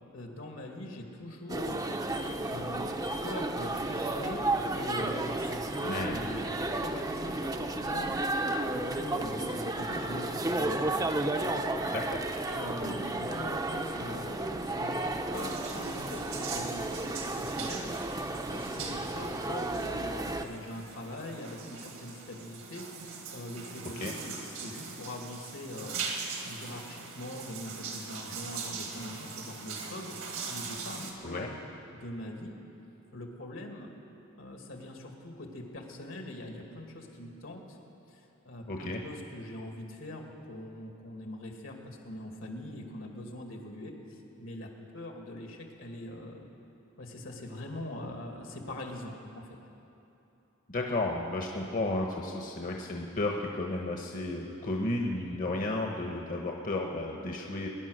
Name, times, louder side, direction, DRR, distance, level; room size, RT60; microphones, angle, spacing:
voice 1, 0.1-1.8 2.1-2.9 3.2-11.9 12.5-22.9 23.3-25.9 26.4-30.1 30.5-31.5 31.9-32.5 33.1-33.9 34.4-37.8 38.1-46.5 47.0-49.5 55.1-55.4, left 1 dB, 75° left, 2 dB, 2.1 m, -42 dB
sound 1, 1.5-20.5, right 2 dB, 20° right, 0.6 m, -33 dB
voice 2, 11.9-12.2 24.0-24.1 31.2-31.5 38.7-39.0 50.7-57.7, left 2 dB, 45° left, 0 dB, 1.1 m, -33 dB
sound 2, 15.3-31.1, right 5 dB, 80° right, 2.0 m, -41 dB
21.0 x 10.5 x 6.4 m, 3.0 s
head